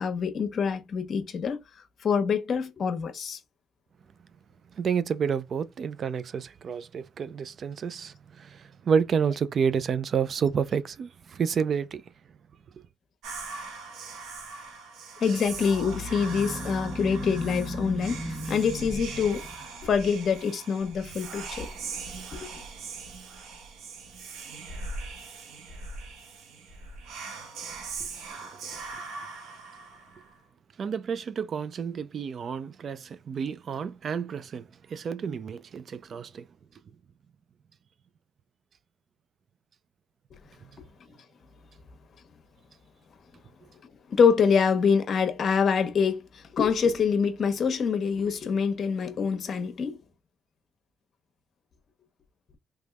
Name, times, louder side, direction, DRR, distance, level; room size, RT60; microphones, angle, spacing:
voice 1, 0.0-1.6 2.0-3.4 15.2-21.7 22.3-22.5 44.1-50.0, left 6 dB, 55° left, 1.0 m, -25 dB
voice 2, 4.8-12.0 28.0-28.1 28.4-28.5 30.8-36.4, right 6 dB, 55° right, 0.4 m, -29 dB
Whispering, 13.2-30.4, right 4 dB, 85° right, 1.2 m, -40 dB
sound 1, 15.5-19.9, left 1 dB, 30° left, 1.1 m, -36 dB
3.5 x 3.2 x 2.3 m
cardioid pair, 90°, 0 cm